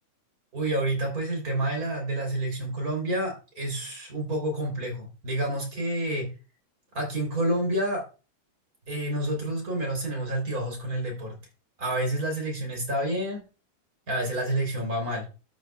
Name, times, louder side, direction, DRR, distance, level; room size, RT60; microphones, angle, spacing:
voice 1, 0.5-6.3 6.9-8.0 8.9-11.4 11.8-13.4 14.1-15.4, right 1 dB, 25° right, 2 dB, 3.6 m, -29 dB
12.5 x 8.3 x 2.3 m, 0.32 s
omnidirectional pair, 4.2 m